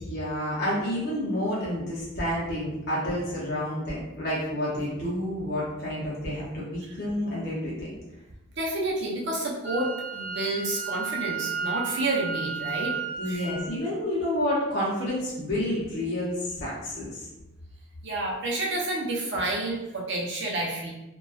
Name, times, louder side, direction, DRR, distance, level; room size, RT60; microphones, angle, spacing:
voice 1, 0.0-7.9 13.2-17.3, left 1 dB, 50° left, -7 dB, 0.6 m, -29 dB
voice 2, 8.6-12.9 13.2-13.5 18.0-20.9, right 2 dB, 55° right, -3 dB, 0.6 m, -29 dB
Wind instrument woodwind instrument, 9.6-13.6, right 6 dB, 80° left, 0.8 m, -33 dB
2.6 x 2.2 x 2.3 m, 0.97 s
head